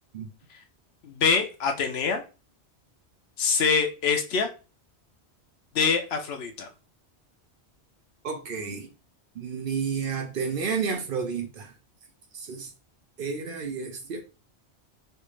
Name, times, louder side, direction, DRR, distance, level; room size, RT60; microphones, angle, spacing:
voice 1, 1.0-2.2 3.4-4.5 5.7-6.7, left 5 dB, 70° left, 0.8 m, -24 dB
voice 2, 8.2-8.9 9.4-11.7 12.3-12.7 13.2-14.2, right 5 dB, 60° right, 0.7 m, -31 dB
3.3 x 2.5 x 3.0 m
omnidirectional pair, 1.1 m